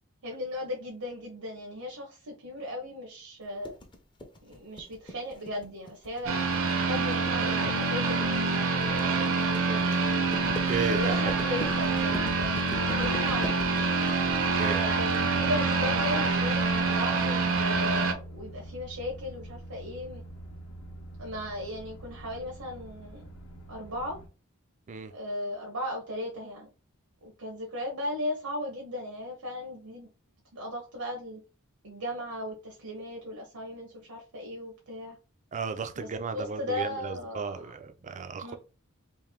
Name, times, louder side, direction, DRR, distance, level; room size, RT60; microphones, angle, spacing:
voice 1, 0.2-3.7 4.4-6.5 6.8-9.9 10.8-14.3 14.8-20.2 21.2-23.2 23.7-24.2 25.1-26.7 27.2-30.1 30.5-31.4 31.8-35.2 35.9-36.1 36.3-37.7 38.4-38.6, left 1 dB, 85° right, 1.1 m, -37 dB
sound 1, 3.6-15.2, left 1 dB, 20° left, 0.7 m, -41 dB
sound 2, 6.3-18.1, right 4 dB, 65° right, 0.7 m, -26 dB
sound 3, 10.2-24.3, equal, 75° left, 0.8 m, -46 dB
voice 2, 10.5-11.3 14.3-14.8 24.9-25.1 35.5-38.5, right 4 dB, 35° right, 0.4 m, -34 dB
3.5 x 2.6 x 3.5 m
head